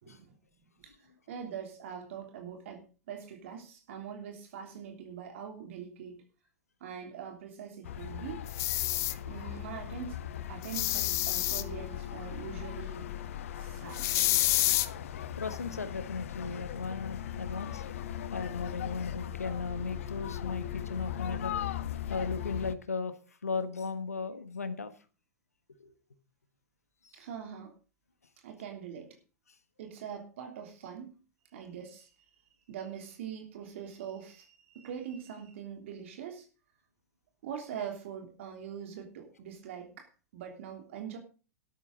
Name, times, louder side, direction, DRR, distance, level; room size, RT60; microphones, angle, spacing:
voice 1, 0.0-0.3 0.8-6.2 6.8-8.5 9.2-10.2 10.5-13.1 13.6-14.0 27.1-27.7 28.4-29.2 29.8-31.2 31.5-32.1 32.7-36.5 37.4-41.2, right 8 dB, 55° right, 4 dB, 3.2 m, -43 dB
sound 1, 7.8-22.7, left 10 dB, 60° left, 1.1 m, -39 dB
sound 2, 8.5-9.1 10.6-11.6 13.9-14.9, left 16 dB, 35° left, 1.2 m, -28 dB
voice 2, 15.3-17.8 18.3-21.5 22.1-23.1 23.4-24.9 25.8-25.9, left 4 dB, 80° left, 11 dB, 1.4 m, -36 dB
13.5 x 12.0 x 3.9 m, 0.36 s
figure-of-eight pair, 100°, 8 cm